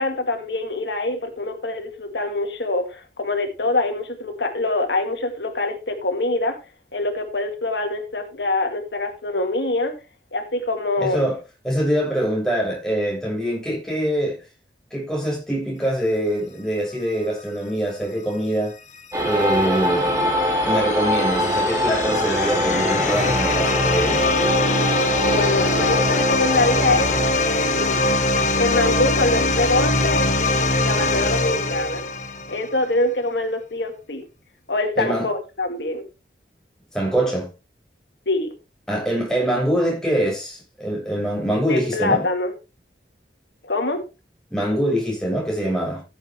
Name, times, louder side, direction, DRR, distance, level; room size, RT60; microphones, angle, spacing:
voice 1, 0.0-6.6 6.9-9.9 10.3-11.3 25.1-28.0 28.6-32.0 32.5-34.2 34.7-36.0 38.3-38.5 41.7-42.5 43.6-44.0, left 2 dB, 80° left, 2.1 m, -24 dB
voice 2, 11.0-11.4 11.6-14.4 14.9-18.7 19.2-20.4 20.6-24.3 35.0-35.3 36.9-37.5 38.9-42.2 44.5-46.0, right 1 dB, 5° left, 7.3 m, -24 dB
sound 1, 18.9-32.8, left 2 dB, 45° left, 1.6 m, -22 dB
sound 2, 19.1-27.3, equal, 20° right, 3.7 m, -24 dB
14.5 x 8.1 x 3.3 m
head